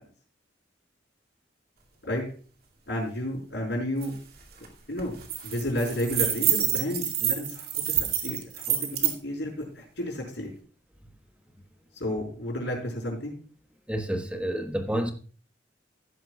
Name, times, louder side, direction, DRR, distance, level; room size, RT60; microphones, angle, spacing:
voice 1, 2.9-4.1 4.9-5.1 5.4-10.5 11.9-13.4, left 1 dB, 65° left, 4.5 m, -32 dB
sound 1, 4.0-4.1 4.4-4.7 5.0-9.1, right 10 dB, 55° right, 2.3 m, -27 dB
voice 2, 13.9-15.1, right 1 dB, 5° right, 1.3 m, -29 dB
15.0 x 11.0 x 2.3 m
head